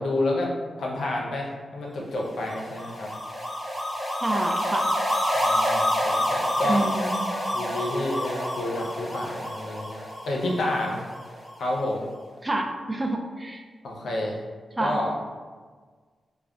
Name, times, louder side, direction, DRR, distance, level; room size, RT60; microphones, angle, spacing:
voice 1, 0.0-3.1 5.3-6.8 7.5-11.0 11.6-12.1 13.8-14.4 14.8-15.1, left 1 dB, 80° left, -2 dB, 0.5 m, -29 dB
sound 1, 2.3-11.6, equal, 5° left, 1.1 m, -28 dB
voice 2, 4.2-4.9 6.7-7.2 12.4-13.6 14.8-15.0, right 1 dB, 25° right, 3 dB, 0.4 m, -27 dB
2.3 x 2.1 x 3.6 m, 1.5 s
cardioid pair, 50°, 0 cm